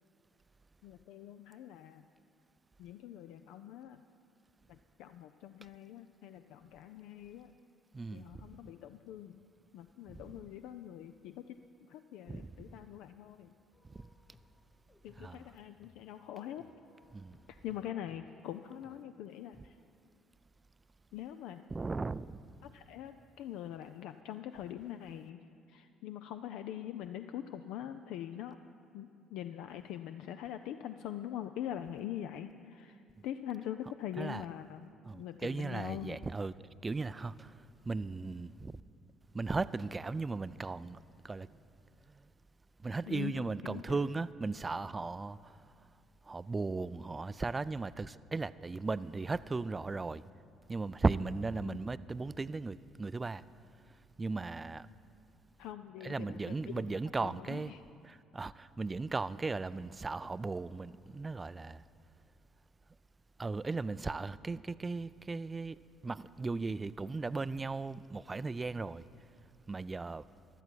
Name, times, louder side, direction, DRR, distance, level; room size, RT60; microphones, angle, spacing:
voice 1, 0.8-2.1 2.8-4.0 4.7-7.5 8.1-9.4 9.7-11.6 11.9-13.6 15.0-16.6 17.5-19.8 21.1-21.7 22.6-28.6 28.9-36.2 43.1-44.0 51.6-51.8 55.6-57.8, left 11 dB, 65° left, 0.3 m, -44 dB
voice 2, 7.9-8.5 10.1-10.2 12.3-12.7 13.9-14.1 15.2-15.4 17.1-17.4 21.7-22.3 34.2-34.4 35.0-36.5 36.8-38.8 39.3-41.0 41.2-41.5 42.1-42.2 42.8-45.6 46.2-50.2 50.7-53.4 54.2-54.9 56.0-57.7 58.0-61.8 63.4-65.8 66.0-69.1 69.7-70.2, right 3 dB, 25° right, 0.3 m, -37 dB
sound 1, 13.7-19.0, left 3 dB, 25° left, 0.7 m, -65 dB
15.5 x 11.5 x 4.5 m
figure-of-eight pair, 50°, 0 cm